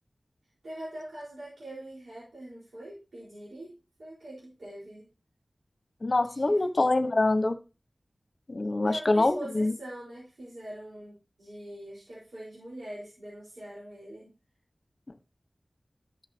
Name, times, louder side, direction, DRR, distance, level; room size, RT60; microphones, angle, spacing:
voice 1, 0.6-5.1 6.2-6.6 8.8-14.3, right 1 dB, 90° right, -8 dB, 4.5 m, -43 dB
voice 2, 6.0-7.6 8.5-9.7, left 2 dB, 55° left, 9 dB, 1.2 m, -25 dB
13.0 x 6.8 x 2.9 m, 0.32 s
wide cardioid pair, 50°, 0 cm